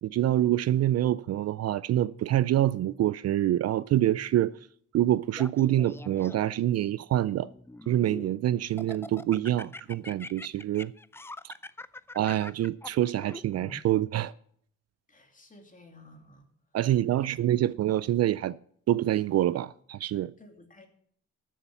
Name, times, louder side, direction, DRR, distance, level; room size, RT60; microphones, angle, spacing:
voice 1, 0.0-4.5 4.9-7.5 7.9-10.9 11.4-11.5 12.1-14.3 16.7-18.6 18.9-20.3, right 13 dB, 55° right, 0.4 m, -26 dB
Laughter, 5.3-6.6 7.3-8.3 8.8-13.8, left 2 dB, 10° left, 0.4 m, -43 dB
voice 2, 15.1-16.5 17.2-17.3 20.4-20.9, left 2 dB, 25° left, 2.6 m, -53 dB
13.0 x 7.1 x 5.9 m
cardioid pair, 90°, 30 cm